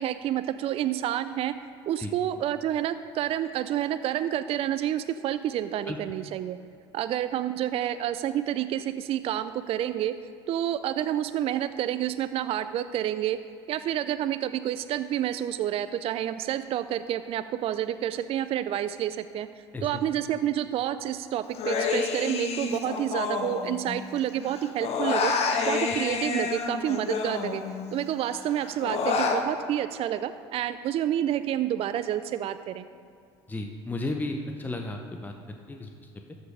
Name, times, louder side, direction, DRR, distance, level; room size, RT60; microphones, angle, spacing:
voice 1, 0.0-1.6 1.9-6.6 6.9-10.2 10.5-13.4 13.7-19.5 19.8-25.3 25.7-27.6 27.9-32.8, right 11 dB, 45° right, 12 dB, 0.4 m, -29 dB
Human voice, 21.5-24.2 24.5-28.0 28.3-29.4, left 5 dB, 50° left, 1.2 m, -29 dB
voice 2, 33.5-36.1, left 2 dB, 10° left, 3 dB, 0.9 m, -34 dB
13.5 x 5.4 x 5.0 m, 2.3 s
hypercardioid pair, 70°, 14 cm